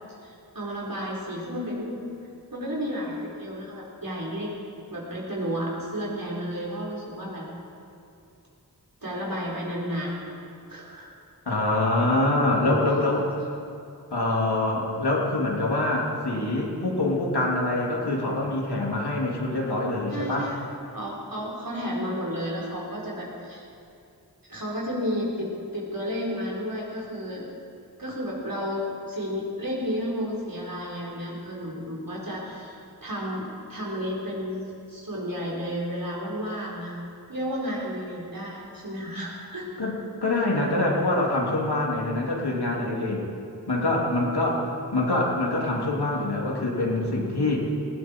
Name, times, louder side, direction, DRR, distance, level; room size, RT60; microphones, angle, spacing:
voice 1, 0.2-2.0 2.5-4.5 4.9-7.5 9.0-10.4 10.7-11.1 12.9-13.0 20.1-20.7 20.9-23.6 24.5-27.5 28.0-37.0 37.3-39.7, equal, 60° right, -4 dB, 4.3 m, -32 dB
voice 2, 11.5-13.3 14.1-20.5 39.8-39.9 40.2-43.2 43.7-47.7, left 2 dB, 85° left, -3 dB, 3.0 m, -25 dB
18.5 x 17.0 x 4.6 m, 2.5 s
wide cardioid pair, 55°, 38 cm